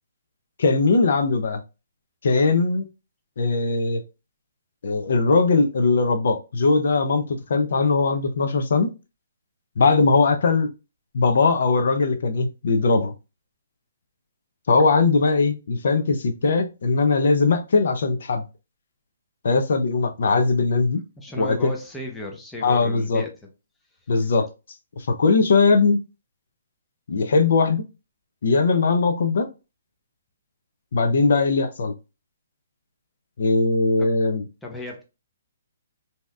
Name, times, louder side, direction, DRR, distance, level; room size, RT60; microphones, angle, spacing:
voice 1, 0.6-1.6 2.2-2.9 3.4-4.0 4.8-8.9 9.8-10.7 11.1-13.1 14.7-18.4 19.4-21.0 21.4-21.7 22.6-23.2 24.1-24.5 25.0-26.0 27.1-27.8 28.4-29.5 30.9-31.9 33.4-34.4, left 3 dB, 65° left, 0.5 m, -20 dB
voice 2, 21.2-23.3 34.0-34.2 34.6-35.0, equal, 5° left, 0.6 m, -35 dB
3.1 x 2.7 x 2.3 m
hypercardioid pair, 155°, 0 cm